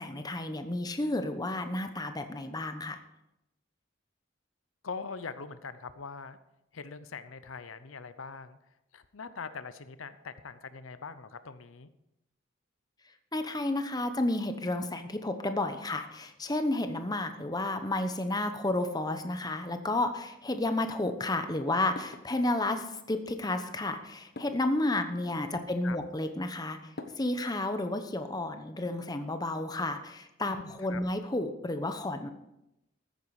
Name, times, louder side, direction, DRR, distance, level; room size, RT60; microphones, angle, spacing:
voice 1, 0.0-3.0 13.3-26.8 27.2-32.3, left 2 dB, 20° left, 8 dB, 0.9 m, -31 dB
voice 2, 4.8-6.4 6.7-8.6 8.9-11.9 25.5-26.0 30.5-31.0, left 5 dB, 85° left, 12 dB, 0.8 m, -42 dB
sound 1, 20.4-27.7, left 2 dB, 50° left, 1.2 m, -52 dB
14.0 x 9.4 x 4.9 m, 0.87 s
head